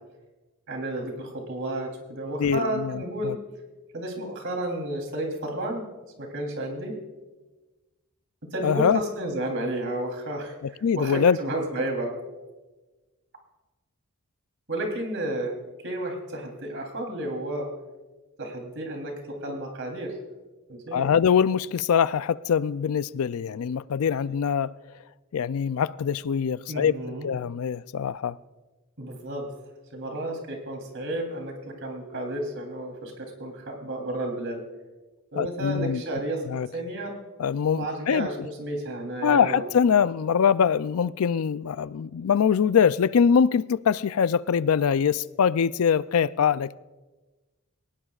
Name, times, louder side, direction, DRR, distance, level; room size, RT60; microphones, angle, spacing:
voice 1, 0.7-3.4 3.9-5.8 6.2-6.9 8.5-10.5 11.0-12.1 14.7-15.5 15.8-17.7 18.4-20.1 20.7-21.1 26.7-27.3 29.0-29.5 29.9-34.6 35.3-36.4 36.7-37.2 37.7-39.7, right 1 dB, 65° right, 3.3 m, -32 dB
voice 2, 2.4-3.4 8.6-9.0 10.6-11.4 20.9-24.7 25.3-28.4 35.4-36.0 36.5-36.7 37.4-38.3 39.2-46.8, left 7 dB, 75° left, 0.4 m, -23 dB
21.0 x 18.5 x 2.4 m
head